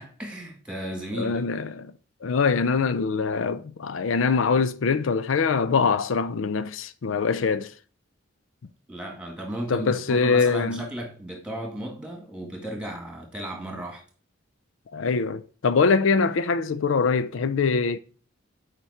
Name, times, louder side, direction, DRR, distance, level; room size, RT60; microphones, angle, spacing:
voice 1, 0.0-1.5 8.9-14.0, right 1 dB, 5° right, 1.9 m, -35 dB
voice 2, 1.2-1.9 2.2-7.7 9.7-10.8 14.9-18.0, left 5 dB, 90° left, 0.5 m, -23 dB
7.6 x 5.1 x 4.2 m
head